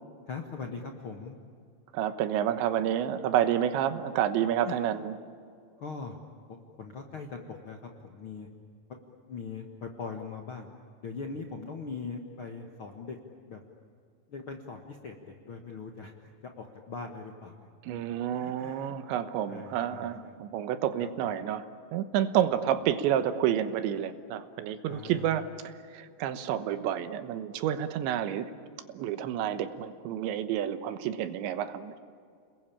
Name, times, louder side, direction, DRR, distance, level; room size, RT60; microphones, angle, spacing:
voice 1, 0.3-1.3 4.6-4.7 5.8-6.2 6.5-8.5 9.3-10.7 11.0-13.2 13.5-13.6 14.3-17.7 18.3-19.2 19.5-20.3 21.0-21.1 24.9-25.3, left 4 dB, 90° left, 2 dB, 1.1 m, -41 dB
voice 2, 1.9-5.2 17.8-21.7 21.9-25.5 25.9-28.5 29.0-32.0, right 10 dB, 85° right, 11 dB, 3.5 m, -29 dB
30.0 x 21.0 x 8.7 m, 2.3 s
omnidirectional pair, 5.1 m